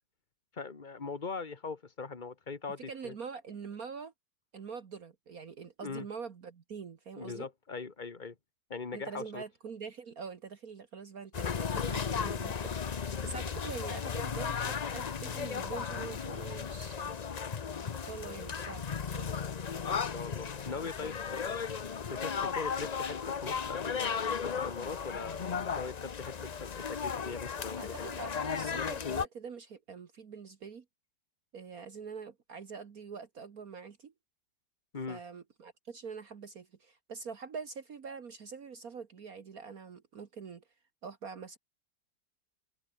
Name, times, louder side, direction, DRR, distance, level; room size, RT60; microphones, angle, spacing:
voice 1, 0.5-3.1 5.8-6.1 7.1-8.3 8.7-9.4 19.9-21.6 22.1-28.2 34.9-35.2, left 4 dB, 25° left, 1.7 m, -41 dB
voice 2, 2.8-4.1 4.5-7.5 8.9-17.2 18.0-19.4 27.8-30.9 31.5-34.1 35.1-40.6 41.0-41.6, right 5 dB, 55° right, 1.9 m, -45 dB
sound 1, 11.3-29.3, left 6 dB, 65° left, 0.4 m, -35 dB
omnidirectional pair, 1.9 m